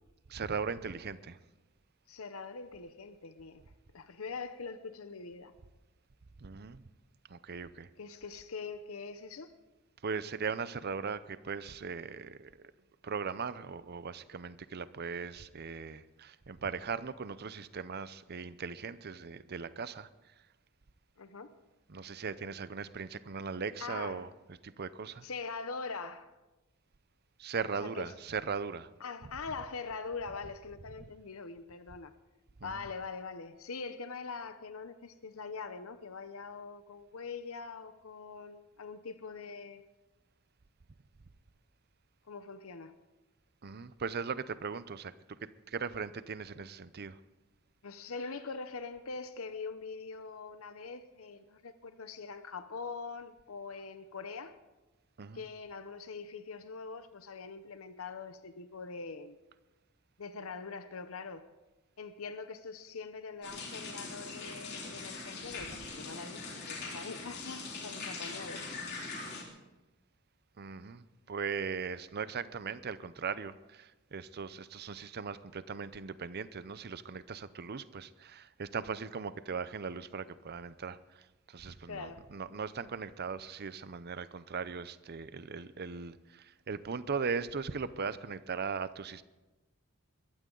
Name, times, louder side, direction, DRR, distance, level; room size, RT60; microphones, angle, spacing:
voice 1, 0.3-1.4 6.4-6.8 7.3-7.9 10.0-12.5 13.0-20.1 21.9-24.3 24.6-25.2 27.4-28.9 32.6-32.8 43.6-45.1 45.4-47.2 55.2-55.4 70.6-89.2, right 5 dB, 50° right, 15 dB, 0.6 m, -39 dB
voice 2, 2.1-3.6 3.9-5.5 8.0-9.5 21.2-21.5 23.8-24.2 25.2-26.3 27.8-28.1 29.0-32.1 32.6-39.8 42.3-42.9 47.8-54.6 55.3-59.4 60.2-61.4 62.0-68.6 81.9-82.2, left 4 dB, 65° left, 11 dB, 0.8 m, -43 dB
sound 1, 63.4-69.4, left 3 dB, 50° left, 3.1 m, -42 dB
21.5 x 15.0 x 3.9 m, 1.1 s
head